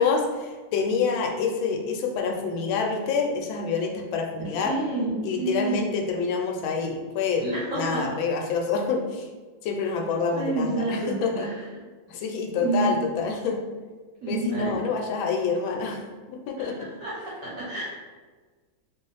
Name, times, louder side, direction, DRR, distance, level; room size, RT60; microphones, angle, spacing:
voice 1, 0.0-4.7 5.2-7.5 7.7-9.3 9.6-11.5 12.1-13.6 14.3-16.0 16.3-16.8, left 5 dB, 85° left, 2 dB, 1.3 m, -27 dB
voice 2, 4.6-5.8 7.4-8.0 10.3-11.6 12.5-13.0 14.2-14.7 16.6-17.9, right 2 dB, 55° right, -6 dB, 1.1 m, -29 dB
3.0 x 2.4 x 3.9 m, 1.4 s
omnidirectional pair, 2.1 m